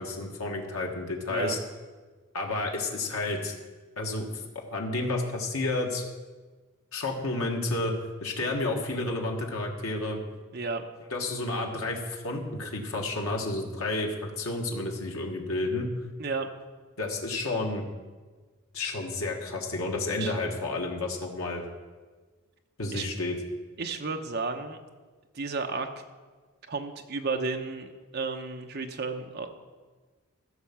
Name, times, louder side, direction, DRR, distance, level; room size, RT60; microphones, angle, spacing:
voice 1, 0.0-1.6 2.3-3.5 4.0-4.3 4.7-6.0 6.9-7.9 8.2-10.2 11.1-15.9 17.0-17.8 18.7-21.6 22.8-23.4, left 2 dB, 75° left, 1 dB, 1.6 m, -31 dB
voice 2, 10.5-10.8 16.2-16.5 20.2-20.3 22.9-23.1 23.8-24.8 25.3-25.9 26.7-29.5, right 4 dB, 45° right, 4 dB, 0.9 m, -32 dB
14.5 x 6.5 x 5.9 m, 1.4 s
head